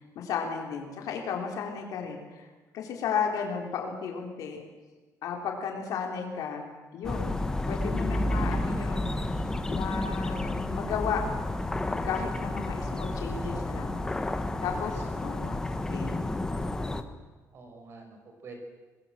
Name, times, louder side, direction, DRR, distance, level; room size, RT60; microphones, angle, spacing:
voice 1, 0.0-2.5 2.7-4.6 5.2-6.7 6.9-7.3 7.7-9.1 9.7-11.2 11.9-13.9 14.6-16.2, left 6 dB, 70° left, 2 dB, 4.1 m, -34 dB
sound 1, 7.0-17.0, left 2 dB, 10° left, 1.2 m, -31 dB
voice 2, 17.5-18.5, right 4 dB, 40° right, 5 dB, 5.0 m, -49 dB
26.0 x 21.0 x 7.6 m, 1.3 s
cardioid pair, 180°, 6 cm